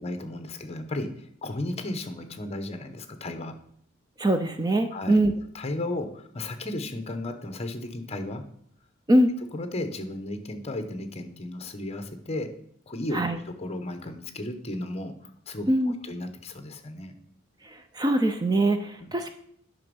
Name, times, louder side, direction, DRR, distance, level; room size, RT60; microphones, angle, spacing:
voice 1, 0.0-3.5 4.9-5.2 5.5-8.4 9.5-12.5 12.9-15.1 15.5-15.7 16.1-17.1 19.0-19.1, left 1 dB, 30° left, 8 dB, 1.0 m, -34 dB
voice 2, 4.2-5.3 9.1-9.3 13.1-13.4 15.7-15.9 17.6-19.3, right 1 dB, 20° right, 7 dB, 0.5 m, -23 dB
9.5 x 6.1 x 5.3 m, 0.66 s
head